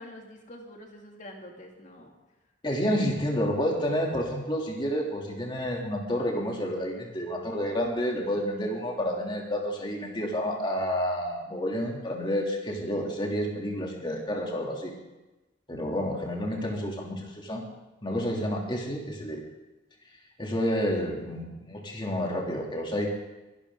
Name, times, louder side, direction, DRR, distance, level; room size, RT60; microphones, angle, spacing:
voice 1, 0.0-2.1, left 1 dB, 45° left, 1 dB, 2.5 m, -46 dB
voice 2, 2.6-14.9 15.7-17.6 18.0-19.4 20.4-23.1, equal, 25° left, -1 dB, 2.9 m, -29 dB
22.5 x 12.0 x 3.9 m, 1.1 s
head